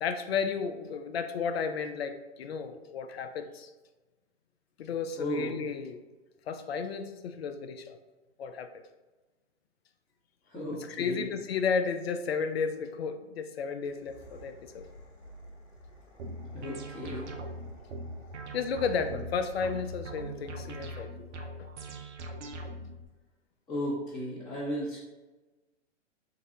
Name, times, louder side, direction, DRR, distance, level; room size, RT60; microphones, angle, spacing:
voice 1, 0.0-3.7 4.8-6.0 6.5-8.0 8.4-8.7 10.7-14.9 18.5-21.1, left 6 dB, 55° left, 8 dB, 0.5 m, -33 dB
voice 2, 5.1-5.7 10.5-11.4 16.5-17.4 23.7-25.0, equal, 15° left, -11 dB, 1.2 m, -35 dB
sound 1, 13.8-20.6, equal, 85° left, 1.2 m, -52 dB
sound 2, 16.2-23.0, right 1 dB, 70° right, 0.7 m, -41 dB
4.0 x 2.6 x 3.8 m, 1.2 s
figure-of-eight pair, 125°, 36 cm